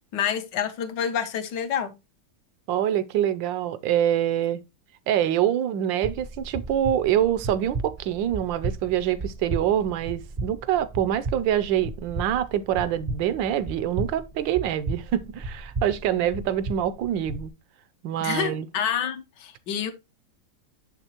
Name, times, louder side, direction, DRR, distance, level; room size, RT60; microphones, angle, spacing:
voice 1, 0.1-1.9 18.2-19.9, left 8 dB, 70° left, 1.3 m, -28 dB
voice 2, 2.7-4.6 5.1-17.5 18.0-18.7, right 11 dB, 80° right, 1.3 m, -25 dB
sound 1, 6.0-17.5, right 2 dB, 35° right, 0.5 m, -35 dB
6.7 x 6.7 x 2.8 m
omnidirectional pair, 2.0 m